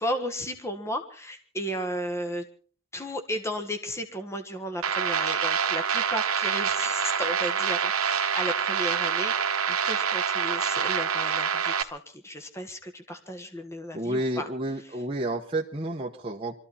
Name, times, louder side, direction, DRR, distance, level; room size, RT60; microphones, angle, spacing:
voice 1, 0.0-2.4 2.9-14.5, equal, 10° left, 6 dB, 1.5 m, -34 dB
sound 1, 4.8-11.8, right 7 dB, 75° right, 1.3 m, -26 dB
voice 2, 13.9-16.6, right 1 dB, 25° right, -1 dB, 1.1 m, -30 dB
24.0 x 14.0 x 4.2 m, 0.42 s
head